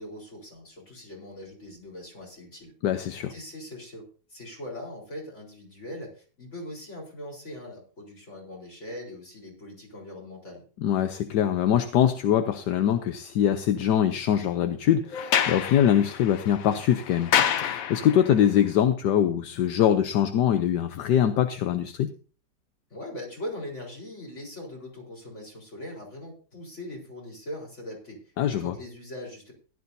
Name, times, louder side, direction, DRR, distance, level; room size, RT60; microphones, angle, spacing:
voice 1, 0.0-2.7 3.3-4.0 4.3-10.6 22.9-29.5, left 1 dB, 40° left, -1 dB, 4.4 m, -41 dB
voice 2, 2.8-3.3 10.8-17.3 17.6-22.1 28.4-28.7, left 10 dB, 75° left, 9 dB, 1.3 m, -23 dB
Sliding door, 15.1-18.4, left 9 dB, 60° left, 1.1 m, -28 dB
16.0 x 12.0 x 2.7 m, 0.38 s
omnidirectional pair, 1.9 m